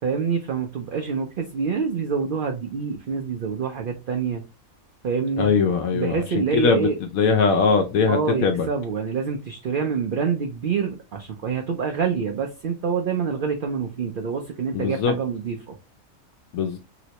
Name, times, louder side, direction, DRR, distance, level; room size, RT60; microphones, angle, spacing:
voice 1, 0.0-4.4 5.0-5.5 5.9-7.0 8.1-15.8, right 6 dB, 65° right, 0.5 m, -26 dB
voice 2, 5.4-8.7 14.7-15.2 16.5-16.8, left 5 dB, 80° left, 1.0 m, -21 dB
3.1 x 3.0 x 2.8 m
omnidirectional pair, 1.5 m